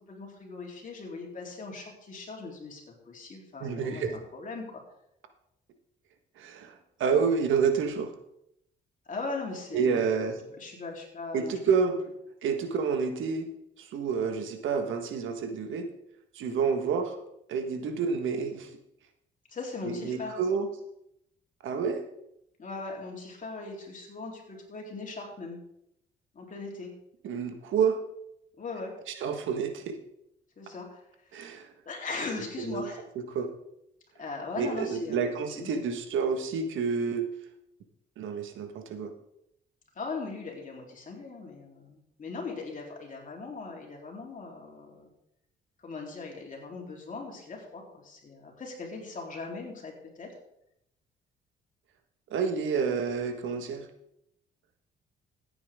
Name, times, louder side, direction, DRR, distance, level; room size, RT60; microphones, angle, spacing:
voice 1, 0.1-4.6 9.1-10.0 10.5-11.5 19.5-20.4 22.6-25.6 26.3-26.9 28.6-28.9 30.6-31.5 31.9-33.0 34.2-35.7 40.0-45.1 45.8-50.3, left 3 dB, 40° left, -1 dB, 3.7 m, -39 dB
voice 2, 3.6-4.1 6.4-6.7 7.0-8.1 9.7-10.4 11.3-11.9 12.4-13.5 13.8-15.9 16.3-17.2 17.5-18.7 19.8-20.7 21.6-22.0 27.2-28.0 29.2-30.0 31.3-31.7 32.7-32.8 33.3-33.5 34.6-37.2 38.2-39.1 52.3-53.9, right 6 dB, 80° right, 6 dB, 1.6 m, -29 dB
14.5 x 8.9 x 3.7 m, 0.78 s
cardioid pair, 90°, 20 cm